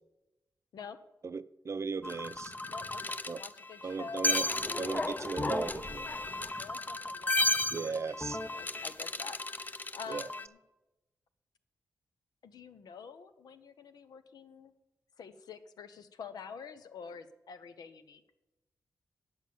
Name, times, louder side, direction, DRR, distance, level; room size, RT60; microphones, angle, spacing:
voice 1, 1.2-2.5 3.3-3.4 3.8-4.5 4.8-6.1 7.7-8.4 10.1-10.3, right 5 dB, 45° right, 0.5 m, -37 dB
sound 1, 2.0-10.5, left 2 dB, 25° left, 0.6 m, -34 dB
voice 2, 2.7-4.5 6.6-10.6 12.4-14.7 15.2-18.2, left 6 dB, 85° left, 0.8 m, -48 dB
8.9 x 7.3 x 7.7 m
cardioid pair, 55°, 7 cm